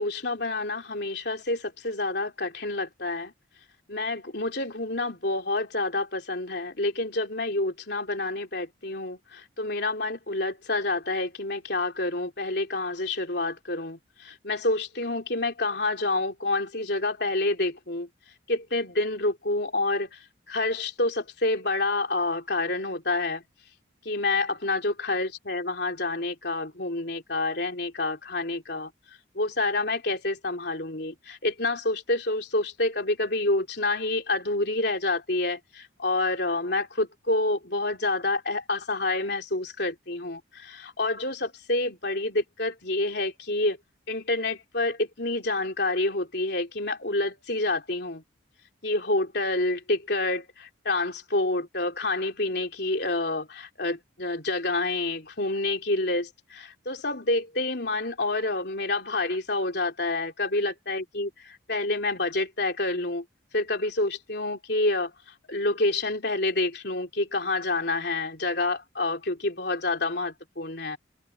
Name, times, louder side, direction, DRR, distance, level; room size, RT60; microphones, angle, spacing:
voice 1, 0.0-3.3 3.9-18.1 18.5-23.4 24.0-28.9 29.3-43.8 44.1-48.2 48.8-63.2 63.5-65.1 65.5-71.0, left 2 dB, 55° left, 3.8 m, -28 dB
head